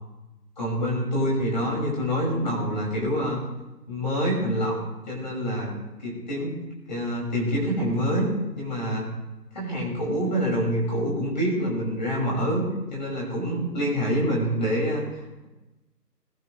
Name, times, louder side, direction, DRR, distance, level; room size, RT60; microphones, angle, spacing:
voice 1, 0.6-3.4 3.9-4.8 5.1-5.7 6.0-6.5 6.9-9.1 9.5-12.6 12.9-15.5, equal, 25° left, -3 dB, 5.8 m, -26 dB
22.0 x 11.5 x 3.2 m, 1.0 s
figure-of-eight pair, 180°, 49 cm